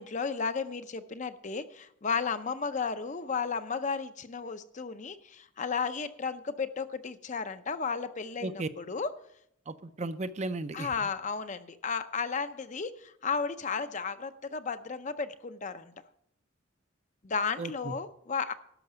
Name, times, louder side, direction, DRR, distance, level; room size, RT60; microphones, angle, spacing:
voice 1, 0.0-9.1 10.7-15.9 17.2-18.5, left 5 dB, 40° left, 11 dB, 0.6 m, -34 dB
voice 2, 9.7-11.1 17.6-17.9, right 2 dB, 35° right, 11 dB, 0.6 m, -35 dB
12.0 x 5.9 x 7.9 m, 0.72 s
head